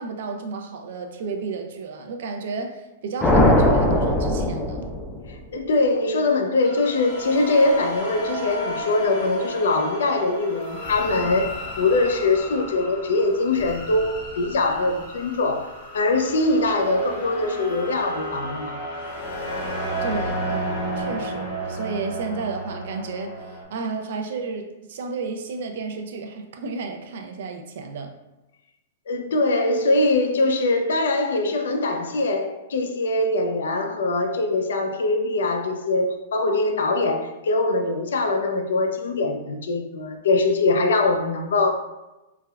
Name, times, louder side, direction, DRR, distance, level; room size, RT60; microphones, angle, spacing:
voice 1, 0.0-4.9 20.0-28.1, right 4 dB, 70° right, 4 dB, 0.4 m, -32 dB
sound 1, 3.2-5.4, left 1 dB, 10° left, 0.4 m, -19 dB
voice 2, 5.3-11.5 11.8-18.8 29.1-41.7, left 2 dB, 85° left, 5 dB, 0.4 m, -22 dB
sound 2, 6.6-23.6, equal, 55° left, 0.9 m, -32 dB
3.3 x 2.1 x 2.3 m, 1.0 s
hypercardioid pair, 135°, 0 cm